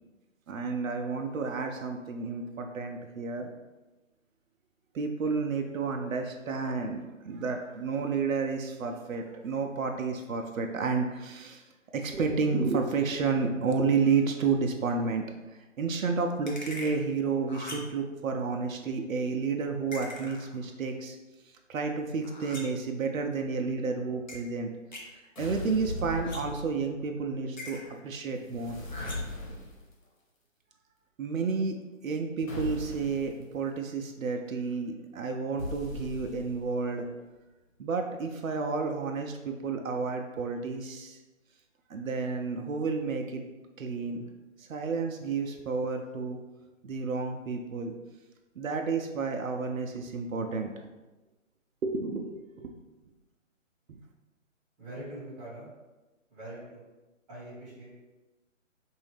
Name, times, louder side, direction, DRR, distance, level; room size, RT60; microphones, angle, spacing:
voice 1, 0.5-3.5 4.9-11.7 11.9-15.2 15.5-21.2 21.7-24.7 25.4-27.8 28.0-28.8 31.2-31.8 32.0-37.1 37.8-41.2 41.9-43.4 43.8-44.2 44.6-46.4 46.8-47.9 48.6-50.7 51.8-52.7, right 4 dB, 85° right, 4 dB, 0.6 m, -31 dB
sound 1, 16.5-17.0 17.5-18.0 19.9-20.7 22.2-22.9 24.3-24.4 24.9-25.1 26.2-26.7 27.6-28.0 28.9-29.4, left 1 dB, 35° left, 0.5 m, -42 dB
sound 2, 25.3-27.0 28.4-29.9 32.5-33.3 35.6-36.7, left 1 dB, 85° left, 1.3 m, -38 dB
voice 2, 54.8-55.7 56.3-56.8 57.3-57.9, right 1 dB, 15° right, -9 dB, 1.4 m, -43 dB
4.1 x 2.7 x 3.3 m, 1.1 s
hypercardioid pair, 165°, 39 cm